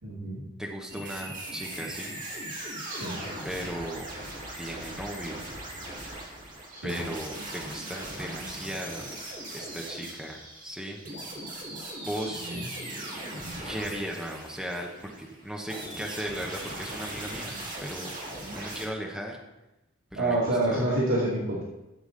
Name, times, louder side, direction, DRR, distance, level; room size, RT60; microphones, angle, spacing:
voice 1, 0.0-0.4 2.9-3.2 6.7-7.0 12.4-12.6 13.4-13.6 20.2-21.6, right 1 dB, 70° right, -6 dB, 2.3 m, -28 dB
voice 2, 0.6-2.2 3.4-4.1 4.6-5.4 6.8-9.1 9.5-11.0 12.1-12.5 13.6-18.1 18.5-19.4 20.1-20.8, equal, ahead, 0 dB, 1.0 m, -37 dB
sound 1, 0.9-18.9, right 1 dB, 35° right, 2.1 m, -39 dB
11.5 x 7.1 x 3.9 m, 0.98 s
head